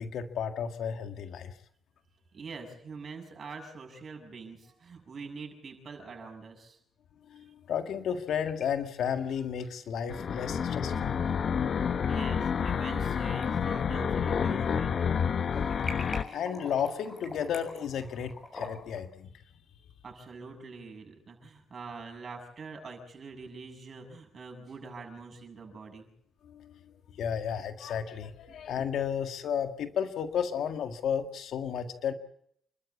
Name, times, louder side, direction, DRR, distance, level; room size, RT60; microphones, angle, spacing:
voice 1, 0.0-1.5 7.3-11.2 16.1-19.4 26.4-32.1, left 8 dB, 70° left, 7 dB, 1.8 m, -33 dB
voice 2, 2.3-6.8 7.4-7.5 12.1-15.8 20.0-26.1 28.5-28.7, right 4 dB, 45° right, 4 dB, 7.3 m, -44 dB
sound 1, 8.1-8.6 8.9-9.0 10.6-10.7 11.7-12.1 12.6-13.1 13.4-14.8 15.1-19.0, left 2 dB, 25° left, 7.1 m, -44 dB
sound 2, 10.1-16.2, left 7 dB, 50° left, 1.0 m, -29 dB
28.5 x 13.0 x 8.5 m, 0.70 s
cardioid pair, 90°, 0 cm